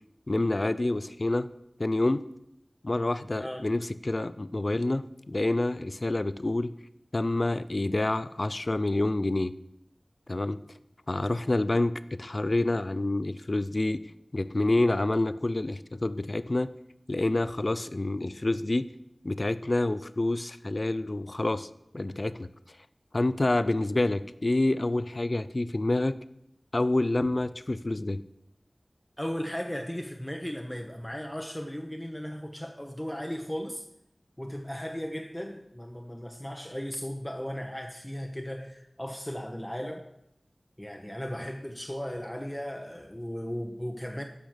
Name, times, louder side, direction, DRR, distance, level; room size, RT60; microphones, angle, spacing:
voice 1, 0.3-1.5 1.8-2.2 2.8-6.7 7.1-9.5 10.3-10.6 11.1-14.1 14.3-16.7 17.1-18.9 19.2-21.7 21.9-22.5 23.1-26.2 26.7-28.2, left 2 dB, 50° left, 14 dB, 0.5 m, -27 dB
voice 2, 3.0-3.6 29.2-33.9 34.4-40.1 40.8-44.2, equal, 10° left, 3 dB, 0.9 m, -36 dB
12.5 x 5.2 x 6.4 m, 0.82 s
wide cardioid pair, 60°, 0 cm